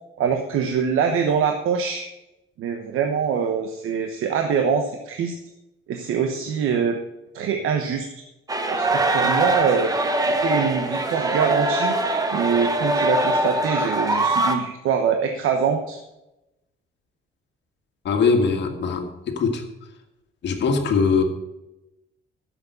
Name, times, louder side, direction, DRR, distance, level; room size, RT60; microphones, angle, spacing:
voice 1, 0.2-2.1 2.6-5.3 5.9-7.0 7.3-8.1 8.7-9.9 10.4-12.0 12.3-16.0, right 6 dB, 90° right, 5 dB, 1.1 m, -24 dB
sound 1, 8.5-14.6, right 1 dB, 15° right, 1.0 m, -22 dB
voice 2, 18.1-19.6 20.4-21.2, left 5 dB, 60° left, 4 dB, 1.8 m, -21 dB
11.0 x 7.6 x 6.8 m, 0.94 s
cardioid pair, 170°, 21 cm